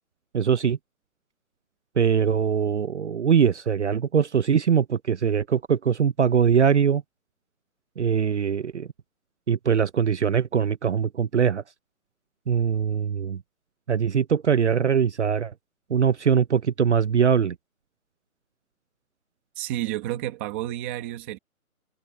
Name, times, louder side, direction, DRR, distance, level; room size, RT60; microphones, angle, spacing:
voice 1, 0.3-0.8 2.0-7.0 8.0-8.9 9.5-11.6 12.5-13.4 13.9-15.5 15.9-17.5, right 7 dB, 50° right, 0.7 m, -22 dB
voice 2, 19.6-21.4, right 14 dB, 10° right, 1.2 m, -30 dB
hypercardioid pair, 170°, 44 cm